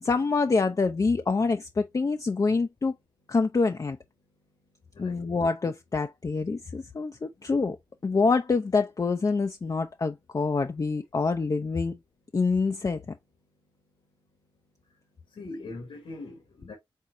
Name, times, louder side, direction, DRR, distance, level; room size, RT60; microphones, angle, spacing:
voice 1, 0.0-2.9 3.3-4.0 5.0-7.8 8.0-12.0 12.3-13.0, left 4 dB, 40° left, 0.5 m, -26 dB
voice 2, 4.9-5.3 14.9-15.0 15.3-16.7, left 2 dB, 85° left, 1.8 m, -41 dB
4.4 x 3.7 x 2.5 m
cardioid pair, 55°, 9 cm